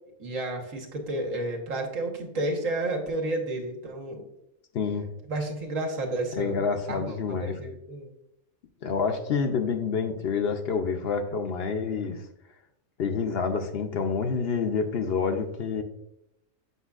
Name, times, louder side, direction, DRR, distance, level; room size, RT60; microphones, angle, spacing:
voice 1, 0.2-4.2 5.3-6.6 6.9-8.1, right 2 dB, 85° right, 1 dB, 1.6 m, -31 dB
voice 2, 4.7-5.1 6.3-7.6 8.8-12.2 13.0-15.8, left 5 dB, 60° left, 6 dB, 0.8 m, -28 dB
8.1 x 5.4 x 2.4 m, 0.84 s
omnidirectional pair, 1.3 m